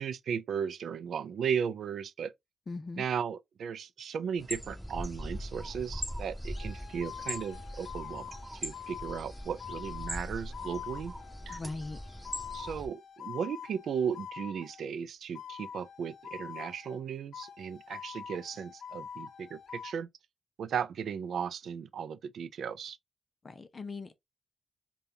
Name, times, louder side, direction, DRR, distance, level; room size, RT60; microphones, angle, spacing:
voice 1, 0.0-2.3 3.0-8.3 8.6-11.1 11.5-11.6 12.5-20.1 20.6-23.0, right 7 dB, 85° right, 0.3 m, -36 dB
voice 2, 2.7-3.1 11.5-12.0 23.4-24.1, left 3 dB, 35° left, 0.5 m, -40 dB
sound 1, 4.4-12.9, equal, ahead, 2.0 m, -41 dB
sound 2, 6.6-14.9 15.3-17.0 17.3-20.0, left 8 dB, 80° left, 0.5 m, -45 dB
5.2 x 2.3 x 2.7 m
wide cardioid pair, 135°, 0 cm